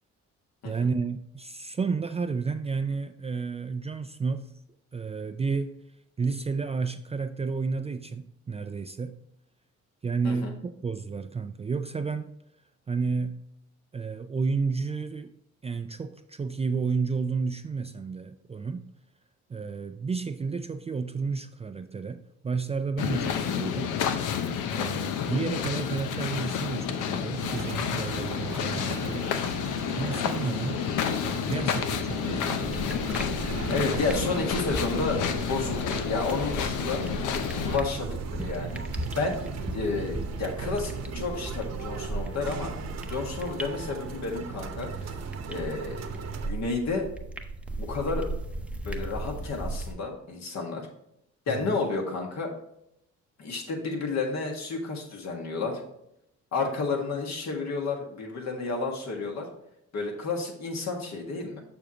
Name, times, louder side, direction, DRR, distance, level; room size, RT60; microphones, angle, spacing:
voice 1, 0.6-4.5 4.9-5.8 6.2-9.2 10.0-12.3 12.9-13.4 13.9-15.3 15.6-18.9 19.5-24.0 24.7-29.3 29.9-30.8 31.2-32.9, right 4 dB, 20° right, 0.3 m, -31 dB
sound 1, 23.0-37.8, left 8 dB, 90° left, 0.7 m, -30 dB
sound 2, 27.4-46.5, right 5 dB, 60° right, 1.0 m, -38 dB
sound 3, 32.6-49.9, right 1 dB, 5° right, 0.7 m, -37 dB
voice 2, 33.7-35.2 35.5-37.0 37.5-38.8 39.2-42.7 43.1-45.1 45.5-46.2 46.5-47.1 47.8-48.3 48.8-50.9 51.5-52.5 53.4-55.8 56.5-59.5 59.9-61.6, left 3 dB, 60° left, 1.7 m, -31 dB
6.9 x 6.4 x 2.9 m
cardioid pair, 90°, 30 cm